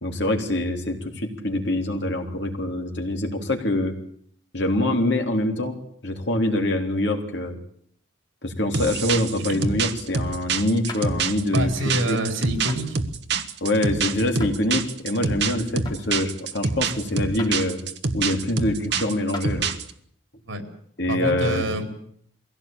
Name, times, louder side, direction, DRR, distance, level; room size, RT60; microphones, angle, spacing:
voice 1, 0.0-3.9 4.5-5.7 6.0-7.6 8.4-12.2 13.6-17.8 18.1-19.7 21.0-21.7, left 1 dB, 60° left, 3 dB, 3.4 m, -25 dB
sound 1, 8.7-19.9, right 4 dB, 60° right, 1.4 m, -26 dB
sound 2, 10.9-11.1 12.7-12.8 14.4-14.6 15.9-16.1 17.4-17.6 18.6-18.7 19.3-19.5 21.0-21.1, left 2 dB, 20° left, 3.0 m, -38 dB
voice 2, 11.5-13.0 20.5-20.6 21.1-21.8, right 1 dB, 85° right, 6 dB, 4.2 m, -26 dB
22.5 x 16.5 x 8.8 m, 0.65 s
head